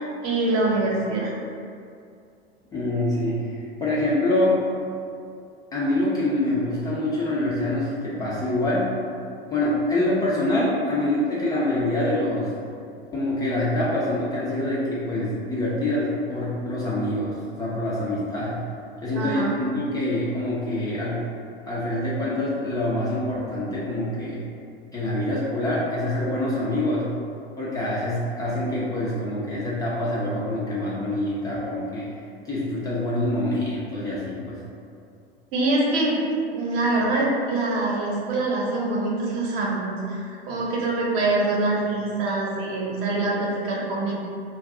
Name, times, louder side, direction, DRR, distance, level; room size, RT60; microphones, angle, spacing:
voice 1, 0.2-1.3 19.1-19.6 35.5-36.2 36.5-44.1, right 2 dB, 40° right, -4 dB, 0.8 m, -24 dB
voice 2, 2.7-4.7 5.7-8.9 9.5-12.5 13.1-18.6 19.0-21.3 21.7-24.4 24.9-27.1 27.6-32.1 32.4-34.6, left 1 dB, 10° left, -8 dB, 0.4 m, -25 dB
2.3 x 2.2 x 3.7 m, 2.4 s
figure-of-eight pair, 90°, 31 cm